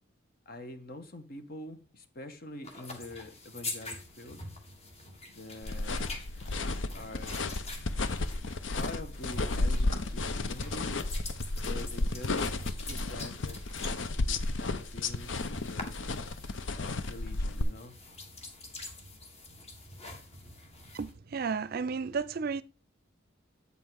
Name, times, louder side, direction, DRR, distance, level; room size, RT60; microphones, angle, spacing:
voice 1, 0.4-4.4 5.3-5.9 6.9-7.4 8.8-11.0 11.6-16.1 16.7-17.9, left 2 dB, 50° left, 1.2 m, -46 dB
sound 1, 2.6-21.1, left 2 dB, 35° left, 1.7 m, -45 dB
sound 2, 5.6-17.6, left 2 dB, 75° left, 0.7 m, -33 dB
voice 2, 20.9-22.6, right 5 dB, 50° right, 0.5 m, -33 dB
8.2 x 5.6 x 4.7 m
head